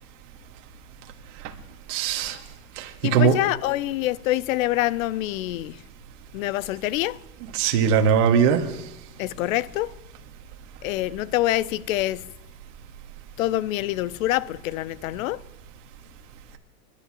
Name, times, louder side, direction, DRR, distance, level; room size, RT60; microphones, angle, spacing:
voice 1, 1.9-2.4 2.8-3.4 7.5-8.6, right 6 dB, 50° right, 1.6 m, -20 dB
voice 2, 3.0-5.8 6.3-7.2 9.2-9.9 10.8-12.2 13.4-15.4, left 16 dB, 60° left, 0.5 m, -26 dB
27.5 x 12.0 x 2.9 m
supercardioid pair, 150°, 47 cm